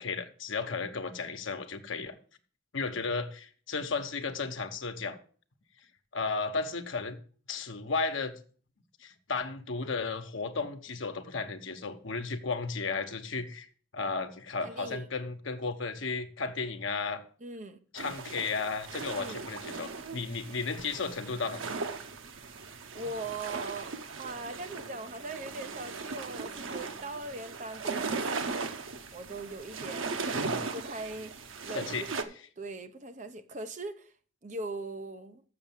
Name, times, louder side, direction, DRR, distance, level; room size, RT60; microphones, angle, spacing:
voice 1, 0.0-2.1 2.7-5.2 6.1-7.2 7.5-8.3 9.0-13.7 13.9-17.2 17.9-21.6 30.3-30.6 31.7-32.0, left 4 dB, 80° left, 1.0 m, -34 dB
voice 2, 14.6-15.1 17.4-17.8 19.2-19.4 22.3-22.7 22.9-32.3 32.6-34.1 34.4-35.4, right 2 dB, 40° right, 0.7 m, -41 dB
sound 1, 18.0-32.2, right 4 dB, 90° right, 0.9 m, -38 dB
Wind instrument woodwind instrument, 24.2-27.7, right 4 dB, 20° right, 5.8 m, -57 dB
6.9 x 6.8 x 7.2 m
head